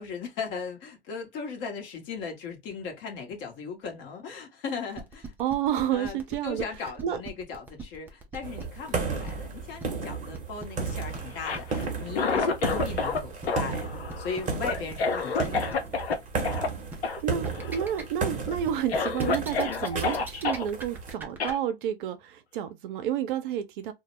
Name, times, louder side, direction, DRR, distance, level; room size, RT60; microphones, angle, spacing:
voice 1, 0.0-5.3 5.9-15.9, left 5 dB, 35° left, 0.9 m, -38 dB
sound 1, 4.9-21.5, right 3 dB, 5° right, 0.3 m, -42 dB
voice 2, 5.4-6.6 7.0-7.2 17.2-23.9, right 10 dB, 55° right, 0.6 m, -30 dB
sound 2, 8.4-21.1, right 4 dB, 25° right, 0.8 m, -34 dB
Cough, 11.3-13.2 13.5-16.2 16.4-16.7 17.0-17.2 17.5-18.0 18.5-18.6 18.9-20.6 21.4-21.6, left 4 dB, 85° left, 0.7 m, -29 dB
2.1 x 2.0 x 2.9 m
hypercardioid pair, 110°, 31 cm